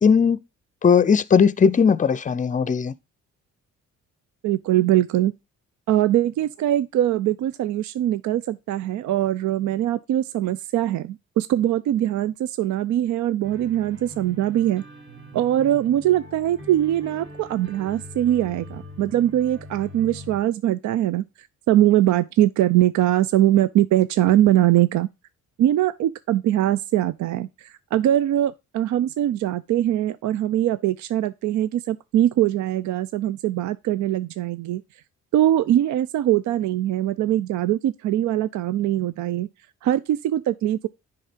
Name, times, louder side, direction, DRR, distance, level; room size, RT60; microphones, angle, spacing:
voice 1, 0.0-0.4 0.8-2.9, left 6 dB, 25° left, 0.5 m, -18 dB
voice 2, 4.4-5.3 5.9-14.8 15.3-21.3 21.7-25.1 25.6-34.8 35.3-39.5 39.8-40.9, right 12 dB, 70° right, 0.5 m, -22 dB
sound 1, 13.4-20.4, left 1 dB, 40° right, 2.5 m, -42 dB
10.0 x 3.6 x 5.1 m
cardioid pair, 90°, 30 cm